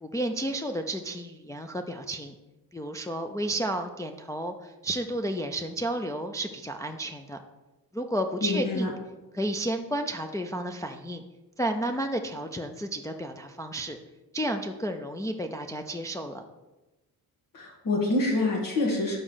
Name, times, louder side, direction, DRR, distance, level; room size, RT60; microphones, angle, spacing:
voice 1, 0.0-2.3 2.7-7.4 7.9-8.9 9.3-11.2 11.6-14.0 14.3-16.4, right 1 dB, 10° left, 3 dB, 0.3 m, -32 dB
voice 2, 8.4-8.9 17.5-19.2, left 2 dB, 60° left, -1 dB, 1.6 m, -26 dB
5.8 x 5.1 x 6.3 m, 1.1 s
wide cardioid pair, 150°, 37 cm